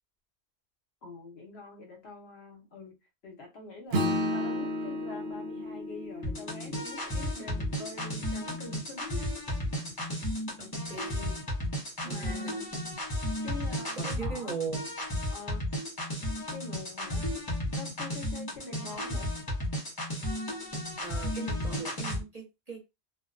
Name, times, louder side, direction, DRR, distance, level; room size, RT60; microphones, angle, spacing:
voice 1, 1.0-3.0 3.2-9.3 12.0-12.7 13.4-14.5 15.3-15.6 16.5-17.3 17.7-19.3, left 3 dB, 70° left, 1.1 m, -44 dB
Acoustic guitar / Strum, 3.9-8.7, left 1 dB, 65° right, 0.8 m, -33 dB
sound 1, 6.2-22.2, left 1 dB, 25° left, 0.6 m, -34 dB
voice 2, 10.6-11.4 12.0-12.5 13.9-14.9 21.0-22.9, right 4 dB, 35° right, 1.1 m, -40 dB
2.5 x 2.2 x 2.4 m
omnidirectional pair, 1.1 m